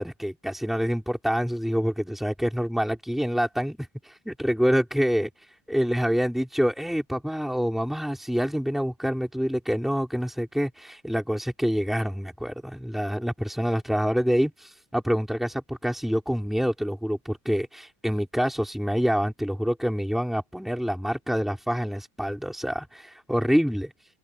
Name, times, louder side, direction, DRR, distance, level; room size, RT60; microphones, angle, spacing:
voice 1, 0.0-5.3 5.7-23.9, equal, ahead, 4.7 m, -26 dB
open air
cardioid pair, 160°, 46 cm